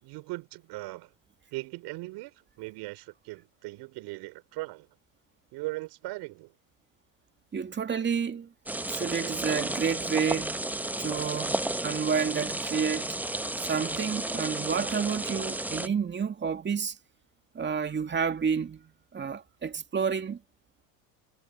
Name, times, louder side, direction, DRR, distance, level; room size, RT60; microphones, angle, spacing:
voice 1, 0.0-1.1 1.5-4.9 5.5-6.5, right 21 dB, 60° right, 4.9 m, -39 dB
voice 2, 7.5-8.5 8.9-13.2 13.6-17.0 17.5-20.4, right 6 dB, 25° right, 2.3 m, -30 dB
sound 1, 8.7-15.9, right 1 dB, 5° right, 0.9 m, -32 dB
hypercardioid pair, 90°, 45 cm